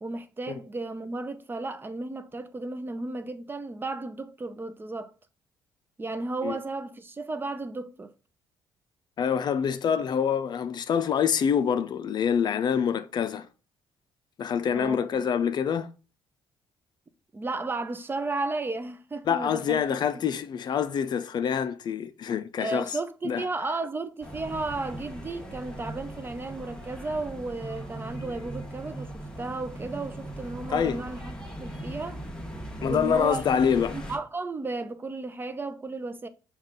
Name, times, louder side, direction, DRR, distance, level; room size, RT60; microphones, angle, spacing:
voice 1, 0.0-5.1 6.0-8.1 14.7-15.3 17.3-20.0 22.6-32.2 32.8-36.3, right 3 dB, 25° right, 0.5 m, -34 dB
voice 2, 9.2-13.5 14.4-15.9 19.3-22.9 23.2-23.4 30.7-31.0 32.8-34.0, left 7 dB, 55° left, 0.4 m, -26 dB
sound 1, 24.2-34.2, right 1 dB, 10° left, 1.1 m, -39 dB
5.5 x 2.3 x 3.7 m
cardioid pair, 75°, 9 cm